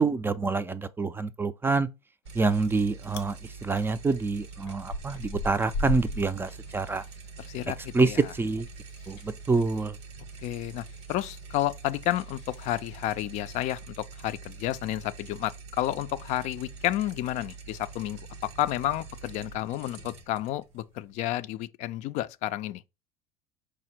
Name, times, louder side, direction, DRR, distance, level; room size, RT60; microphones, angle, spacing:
voice 1, 0.0-1.9 2.3-7.0 7.9-8.7 9.1-10.0, right 3 dB, 15° right, 0.4 m, -26 dB
Chewing mastication, 2.3-2.7 3.0-3.3 3.7-7.5 7.8-13.2, left 2 dB, 90° left, 0.7 m, -39 dB
sound 1, 2.3-21.5, right 4 dB, 85° right, 0.9 m, -45 dB
voice 2, 7.5-8.3 10.4-18.2 18.6-22.8, left 14 dB, 55° left, 0.4 m, -31 dB
4.9 x 2.0 x 4.3 m
hypercardioid pair, 85°, 14 cm